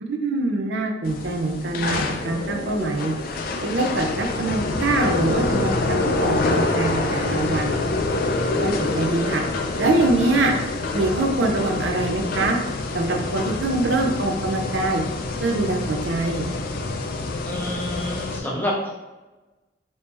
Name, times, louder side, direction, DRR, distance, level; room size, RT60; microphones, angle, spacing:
voice 1, 0.0-3.1 3.6-7.7 8.6-9.4 9.8-10.5 10.9-12.6 12.9-15.0 15.4-16.5, right 2 dB, 70° right, 2 dB, 0.5 m, -24 dB
sound 1, 1.0-18.4, left 2 dB, 50° left, 0.3 m, -26 dB
voice 2, 17.4-18.9, left 1 dB, 10° left, -4 dB, 0.7 m, -28 dB
3.1 x 2.7 x 3.3 m, 1.1 s
head